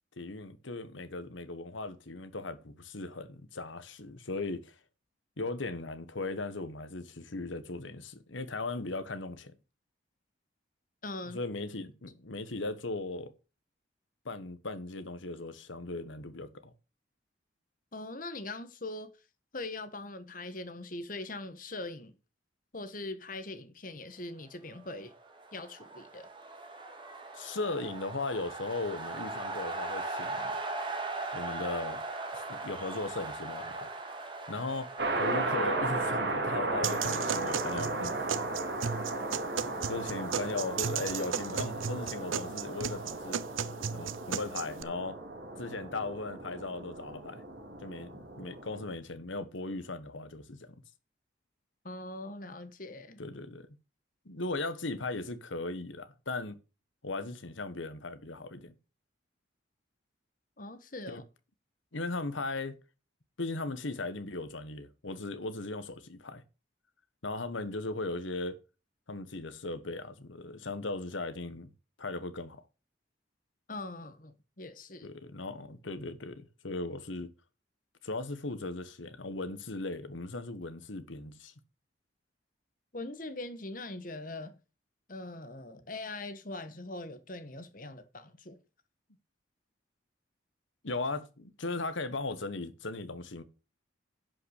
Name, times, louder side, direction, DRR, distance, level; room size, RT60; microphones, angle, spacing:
voice 1, 0.2-4.8 5.4-9.5 11.2-13.3 14.2-16.7 27.3-30.5 31.3-32.0 32.3-33.9 34.5-34.9 35.2-38.2 39.9-43.4 43.9-45.2 45.6-47.4 47.8-50.7 53.2-53.7 54.2-56.6 57.0-58.7 61.1-61.2 61.9-62.8 63.4-66.4 67.2-68.6 69.1-71.7 72.0-72.6 75.0-77.3 78.0-81.5 90.8-93.4, left 2 dB, 80° left, 1.4 m, -37 dB
voice 2, 11.0-11.4 17.9-19.1 19.5-22.1 22.7-25.1 25.5-26.3 51.8-53.2 60.6-61.2 73.7-75.1 82.9-84.6 85.1-88.6, left 2 dB, 45° left, 1.3 m, -41 dB
sound 1, 25.1-37.1, right 3 dB, 25° right, 1.9 m, -39 dB
sound 2, 35.0-48.9, right 2 dB, 60° right, 2.7 m, -35 dB
sound 3, 36.8-44.8, right 7 dB, 90° right, 0.6 m, -35 dB
11.0 x 5.8 x 6.5 m
head